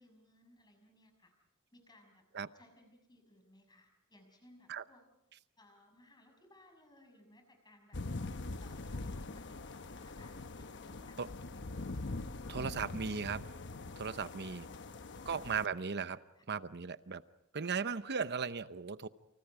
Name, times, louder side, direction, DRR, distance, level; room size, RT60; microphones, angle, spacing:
voice 1, 0.0-1.3 1.7-2.2 2.5-5.0 5.6-8.0 8.6-11.7 16.3-16.4, left 1 dB, 20° left, 5 dB, 6.3 m, -63 dB
sound 1, 7.9-15.7, left 2 dB, 55° left, 1.0 m, -43 dB
voice 2, 12.5-13.4 14.0-14.7 15.3-16.2 16.5-17.2 17.5-19.1, right 5 dB, 50° right, 13 dB, 0.9 m, -37 dB
29.5 x 29.0 x 4.9 m, 0.86 s
head